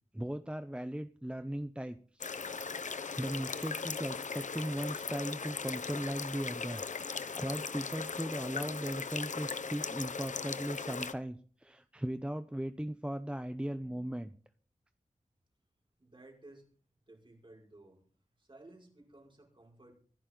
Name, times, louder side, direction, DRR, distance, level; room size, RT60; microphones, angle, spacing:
voice 1, 0.1-14.3, right 1 dB, 10° right, 10 dB, 0.8 m, -38 dB
sound 1, 2.2-11.1, left 5 dB, 75° left, 0.9 m, -38 dB
voice 2, 16.0-16.8 17.1-18.0 18.3-19.9, right 2 dB, 40° right, 0 dB, 5.9 m, -56 dB
24.5 x 11.0 x 3.9 m, 0.43 s
wide cardioid pair, 85°, 13 cm